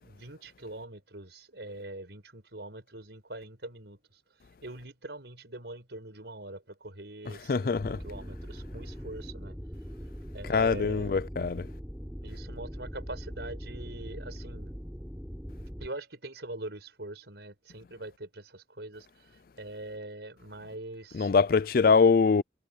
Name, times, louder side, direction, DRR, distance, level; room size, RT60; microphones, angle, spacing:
voice 1, 0.0-4.0 4.6-7.8 8.0-9.5 10.3-11.1 12.2-14.7 15.8-19.3 19.6-21.3, right 2 dB, 70° right, 5.1 m, -43 dB
voice 2, 7.5-8.0 10.5-11.7 21.1-22.4, left 5 dB, 50° left, 0.4 m, -23 dB
sound 1, 7.8-15.9, equal, 5° right, 5.5 m, -41 dB
head